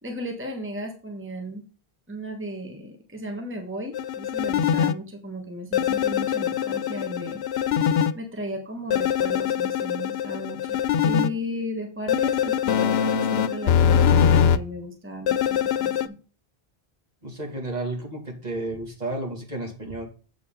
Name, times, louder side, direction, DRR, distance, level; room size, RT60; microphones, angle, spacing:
voice 1, 0.0-1.6 2.1-7.4 8.1-16.1, equal, 10° right, 3 dB, 1.4 m, -35 dB
sound 1, 3.9-4.9 5.7-8.1 8.9-11.3 12.1-14.6 15.3-16.1, left 8 dB, 90° left, 0.8 m, -22 dB
voice 2, 17.2-20.1, right 2 dB, 45° right, 0 dB, 2.3 m, -32 dB
7.9 x 7.0 x 3.7 m, 0.37 s
omnidirectional pair, 1.0 m